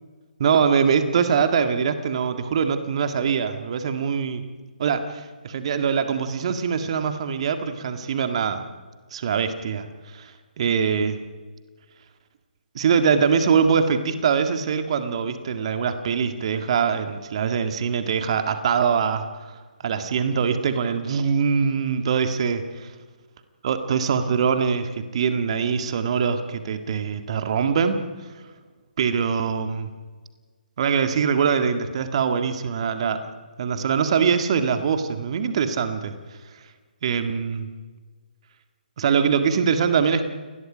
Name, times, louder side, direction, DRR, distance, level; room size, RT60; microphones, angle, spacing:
voice 1, 0.4-4.4 4.8-8.6 9.1-9.9 10.1-11.2 12.7-22.9 23.6-28.0 29.0-29.9 30.8-33.2 33.6-36.1 37.0-37.7 39.0-40.2, right 6 dB, 40° right, 8 dB, 1.9 m, -23 dB
29.5 x 21.0 x 5.1 m, 1.4 s
figure-of-eight pair, 140°, 5 cm